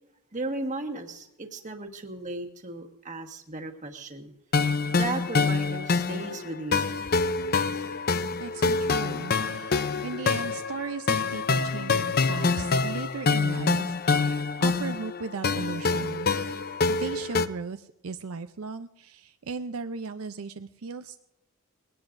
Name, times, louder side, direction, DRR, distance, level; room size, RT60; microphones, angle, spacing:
voice 1, 0.3-4.3 4.9-7.0, right 2 dB, 35° right, 3 dB, 1.5 m, -35 dB
sound 1, 4.5-17.5, left 4 dB, 45° left, 0.6 m, -26 dB
voice 2, 8.4-16.3 16.9-21.2, right 4 dB, 75° right, 9 dB, 0.5 m, -37 dB
21.0 x 18.0 x 2.6 m, 0.86 s
head